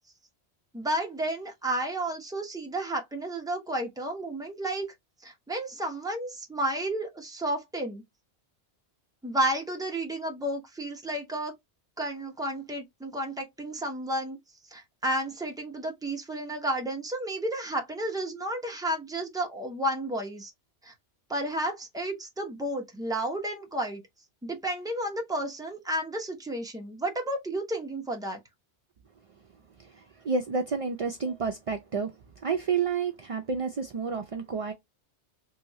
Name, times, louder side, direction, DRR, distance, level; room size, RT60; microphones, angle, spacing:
voice 1, 0.7-4.9 5.2-8.0 9.2-11.5 12.0-14.4 14.7-20.5 20.8-20.9 21.3-24.0 24.4-28.4, right 1 dB, 5° right, 0.6 m, -32 dB
voice 2, 30.2-32.1 32.4-34.7, right 5 dB, 65° right, 0.3 m, -29 dB
3.0 x 3.0 x 2.7 m
omnidirectional pair, 1.1 m